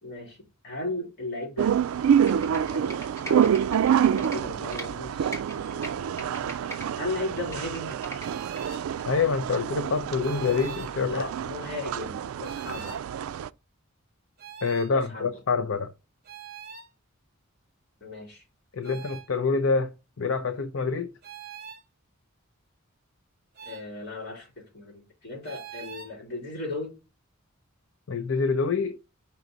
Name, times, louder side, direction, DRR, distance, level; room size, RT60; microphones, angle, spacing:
voice 1, 0.0-0.4 0.6-1.8 2.5-5.4 5.7-8.0 11.0-12.9 14.9-15.3 18.0-18.4 18.9-19.0 23.6-26.9, left 2 dB, 50° left, 3.4 m, -37 dB
sound 1, 1.6-13.5, right 8 dB, 80° right, 0.3 m, -27 dB
Computer keyboard, 2.3-4.9 5.2-6.9 7.2-8.6 9.0-9.1, equal, 15° left, 1.9 m, -41 dB
sound 2, 8.2-8.9 10.2-10.9 12.4-13.0 14.4-14.9 16.2-16.9 18.8-19.3 21.2-21.8 23.5-23.9 25.4-26.1, right 6 dB, 45° right, 0.9 m, -42 dB
voice 2, 9.1-11.3 14.6-15.9 18.7-21.1 28.1-29.0, left 4 dB, 70° left, 0.6 m, -26 dB
5.7 x 3.9 x 6.0 m
head